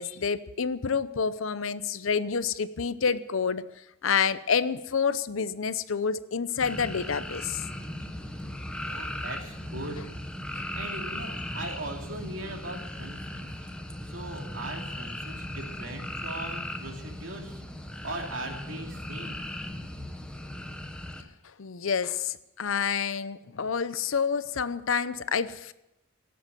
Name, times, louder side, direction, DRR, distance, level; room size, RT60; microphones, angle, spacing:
voice 1, 0.0-3.6 4.0-7.6 21.6-25.7, left 6 dB, 70° left, 15 dB, 0.7 m, -28 dB
sound 1, 6.6-21.2, left 1 dB, 5° left, 1.1 m, -37 dB
voice 2, 8.8-10.0 10.8-13.5 14.1-17.6 18.0-19.4, right 2 dB, 65° right, 2 dB, 2.8 m, -39 dB
18.0 x 7.9 x 7.6 m, 0.90 s
head